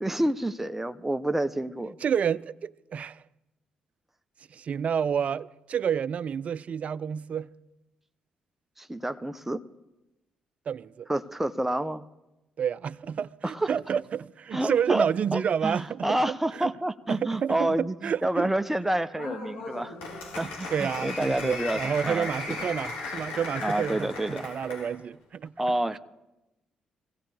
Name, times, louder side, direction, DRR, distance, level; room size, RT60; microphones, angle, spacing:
voice 1, 0.0-2.0 8.8-9.6 11.1-12.0 13.4-13.7 14.5-20.0 20.4-21.8 22.0-22.3 23.6-24.5 25.6-26.0, right 1 dB, 10° right, 0.8 m, -28 dB
voice 2, 2.0-3.2 4.5-7.5 10.7-11.1 12.6-16.2 16.6-16.7 17.1-18.5 20.4-25.5 25.9-26.0, right 7 dB, 55° right, 0.5 m, -29 dB
Applause, 19.1-24.9, left 3 dB, 85° left, 3.8 m, -36 dB
23.5 x 16.5 x 3.5 m
hypercardioid pair, 50°, 3 cm